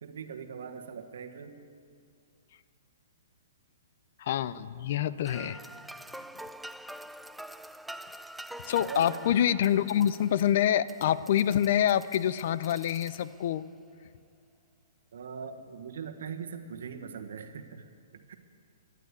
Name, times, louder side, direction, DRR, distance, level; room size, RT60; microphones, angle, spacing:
voice 1, 0.0-1.6 8.9-9.2 15.1-18.3, right 6 dB, 70° right, 6 dB, 1.4 m, -41 dB
voice 2, 4.2-5.6 8.7-13.6, left 10 dB, 55° left, 16 dB, 0.5 m, -26 dB
sound 1, 5.2-13.6, right 1 dB, ahead, 0.3 m, -46 dB
13.5 x 11.0 x 8.3 m, 2.3 s
hypercardioid pair, 130°, 0 cm